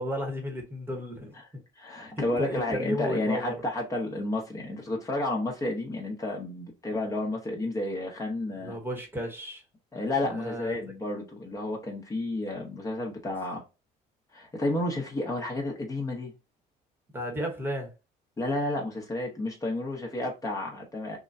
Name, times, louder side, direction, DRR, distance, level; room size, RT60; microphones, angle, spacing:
voice 1, 0.0-1.6 2.2-3.6 8.6-9.6 10.2-10.8 17.1-17.9, equal, 15° right, 1.1 m, -33 dB
voice 2, 1.8-8.8 9.9-13.6 14.3-16.3 18.4-21.2, left 2 dB, 20° left, 1.0 m, -31 dB
6.0 x 2.2 x 2.6 m
cardioid pair, 135°, 17 cm